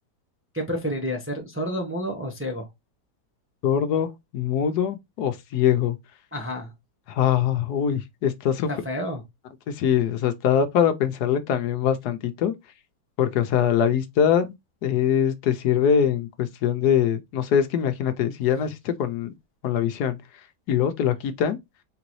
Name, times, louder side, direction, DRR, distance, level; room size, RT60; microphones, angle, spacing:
voice 1, 0.5-2.6 6.3-6.7 8.7-9.2, equal, 10° right, 0.7 m, -29 dB
voice 2, 3.6-6.0 7.1-8.7 9.7-12.5 13.2-14.5 14.8-19.3 19.6-20.2 20.7-21.6, left 9 dB, 75° left, 1.2 m, -23 dB
3.9 x 3.8 x 3.0 m
omnidirectional pair, 1.8 m